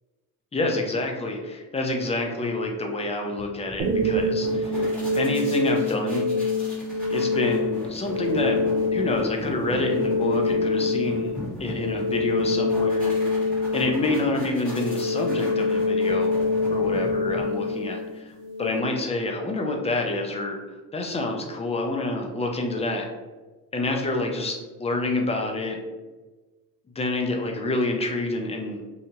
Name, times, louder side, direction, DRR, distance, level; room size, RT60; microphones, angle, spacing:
voice 1, 0.5-6.3 7.1-8.6 8.9-13.2 13.7-16.4 16.7-20.6 20.9-23.1 23.7-25.8 27.0-29.0, left 2 dB, 20° left, 2 dB, 0.4 m, -28 dB
sound 1, 3.4-17.7, left 1 dB, 5° left, 1.1 m, -38 dB
sound 2, 3.8-18.8, left 3 dB, 85° right, 0.5 m, -25 dB
2.8 x 2.1 x 2.8 m, 1.2 s
cardioid pair, 100°, 35 cm